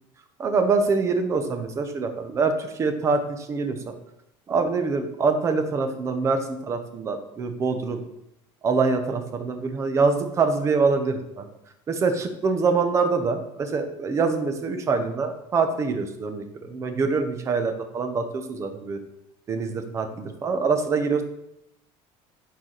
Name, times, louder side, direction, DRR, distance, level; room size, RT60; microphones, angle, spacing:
voice 1, 0.4-3.9 4.5-8.0 8.6-11.5 11.9-19.0 19.5-21.2, right 4 dB, 25° right, 7 dB, 0.8 m, -25 dB
11.0 x 4.7 x 4.0 m, 0.82 s
cardioid pair, 170°, 12 cm